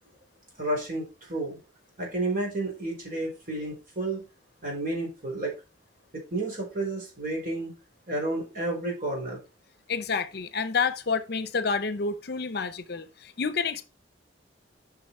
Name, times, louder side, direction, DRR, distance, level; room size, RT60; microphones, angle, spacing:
voice 1, 0.6-1.6 2.0-4.3 4.6-5.5 6.1-7.7 8.1-9.4, right 2 dB, 45° right, 4.0 m, -31 dB
voice 2, 9.9-13.8, left 5 dB, 55° left, 0.7 m, -29 dB
7.0 x 6.0 x 4.3 m
head